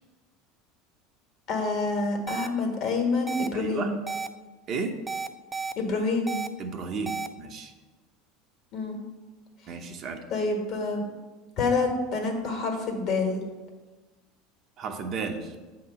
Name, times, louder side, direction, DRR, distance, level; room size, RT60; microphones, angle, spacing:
voice 1, 1.5-3.9 5.8-6.4 8.7-9.0 10.3-11.0 11.6-13.4, left 3 dB, 55° left, 3 dB, 1.4 m, -27 dB
sound 1, 2.3-2.5 3.3-3.5 4.1-4.3 5.1-5.7 6.3-6.5 7.1-7.3, right 4 dB, 15° right, 0.4 m, -32 dB
voice 2, 3.5-3.9 4.7-4.9 6.6-7.7 9.7-10.2 14.8-15.5, right 4 dB, 45° right, 4 dB, 0.8 m, -33 dB
7.5 x 2.9 x 5.5 m, 1.2 s
supercardioid pair, 100°, 0 cm